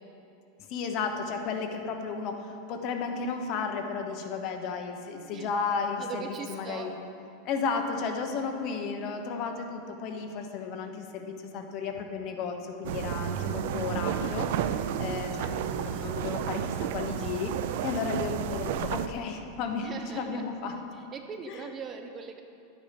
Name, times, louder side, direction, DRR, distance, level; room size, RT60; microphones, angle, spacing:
voice 1, 0.7-7.0 7.4-16.7 16.9-20.8 21.5-21.7, left 5 dB, 40° left, 4 dB, 1.1 m, -33 dB
voice 2, 6.0-6.9 19.8-20.4 21.1-22.4, right 5 dB, 20° right, 6 dB, 0.6 m, -40 dB
sound 1, 12.8-19.1, right 9 dB, 60° right, 0.5 m, -31 dB
12.0 x 8.8 x 5.1 m, 2.8 s
supercardioid pair, 155°, 0 cm